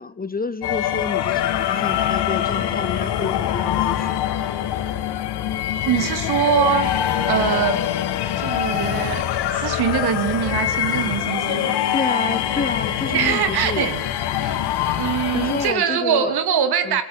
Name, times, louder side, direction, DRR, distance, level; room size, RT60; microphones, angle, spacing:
voice 1, 0.0-4.3 11.9-13.9 15.3-16.4 16.8-17.0, left 4 dB, 20° left, 16 dB, 1.3 m, -29 dB
sound 1, 0.6-15.7, left 11 dB, 60° left, 2.3 m, -24 dB
voice 2, 5.8-6.9 7.2-7.8 8.4-9.2 9.5-11.8 13.1-14.0 14.4-14.6 14.8-17.0, right 8 dB, 55° right, 10 dB, 3.1 m, -22 dB
27.5 x 18.5 x 7.3 m, 0.76 s
figure-of-eight pair, 45°, 44 cm